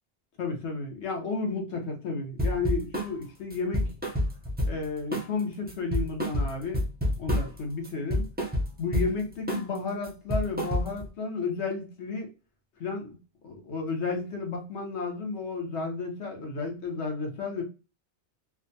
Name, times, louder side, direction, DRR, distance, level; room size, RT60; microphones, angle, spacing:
voice 1, 0.4-3.9 4.6-6.8 7.2-8.2 8.8-12.3 12.8-13.2 13.4-17.6, left 4 dB, 75° left, 1.1 m, -32 dB
sound 1, 2.4-3.1 3.5-4.9 5.1-5.4 5.7-7.6 7.8-9.1 9.5-9.8 10.0-11.1, left 1 dB, 15° right, 0.4 m, -28 dB
2.7 x 2.2 x 2.6 m
omnidirectional pair, 1.2 m